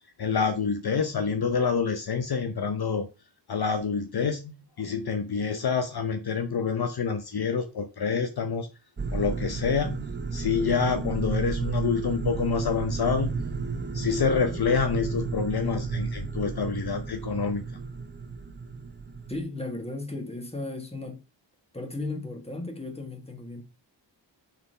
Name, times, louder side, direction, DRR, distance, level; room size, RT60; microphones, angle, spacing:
voice 1, 0.2-3.1 3.5-8.7 9.1-13.5 13.9-17.6, left 5 dB, 55° left, 0.8 m, -27 dB
sound 1, 9.0-19.4, right 4 dB, 25° right, 0.6 m, -32 dB
voice 2, 19.3-21.2 21.7-23.6, left 2 dB, 15° left, 1.6 m, -35 dB
5.9 x 4.0 x 5.5 m
wide cardioid pair, 100°, 45 cm